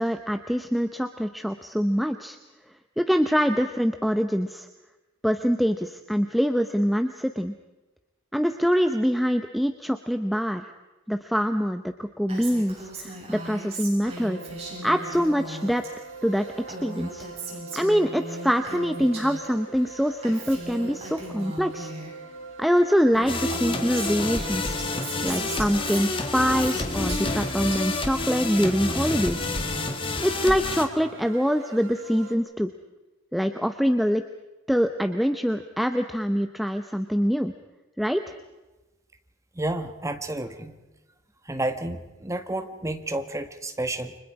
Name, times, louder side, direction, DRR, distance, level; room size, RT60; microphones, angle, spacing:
voice 1, 0.0-2.4 3.0-4.7 5.2-7.5 8.3-10.7 11.1-14.4 14.8-15.8 16.2-16.5 16.8-17.3 17.7-21.9 22.6-29.4 30.2-32.7 33.3-34.2 34.7-37.5 38.0-38.2, equal, ahead, 7 dB, 0.8 m, -24 dB
Female speech woman speaking, 12.3-15.9 16.2-19.5 19.7-22.1 22.8-22.9 23.1-27.8 28.2-30.1, right 1 dB, 30° right, 7.6 m, -38 dB
sound 1, 14.0-32.4, right 4 dB, 75° right, 2.1 m, -43 dB
sound 2, 23.3-30.8, left 3 dB, 25° left, 2.0 m, -29 dB
voice 2, 39.5-40.8 41.4-44.2, right 1 dB, 15° right, 8 dB, 1.5 m, -31 dB
29.5 x 25.0 x 4.9 m, 1.1 s
head